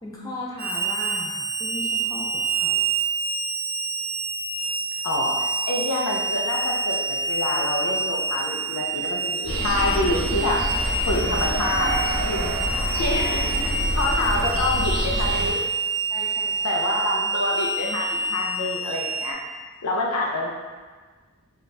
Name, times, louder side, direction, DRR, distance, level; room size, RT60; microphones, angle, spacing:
voice 1, 0.0-2.9 11.0-11.2 12.3-12.6 16.1-16.8, left 1 dB, 15° left, -4 dB, 0.4 m, -37 dB
Harmonica, 0.6-19.3, right 3 dB, 40° right, 0.5 m, -27 dB
voice 2, 5.0-10.6 11.1-12.0 12.3-12.4 13.0-13.5 14.0-15.6 16.6-19.4 19.8-20.5, left 2 dB, 90° left, -1 dB, 0.5 m, -27 dB
sound 1, 9.4-15.5, equal, 45° left, 1.1 m, -27 dB
3.2 x 2.4 x 4.0 m, 1.4 s
head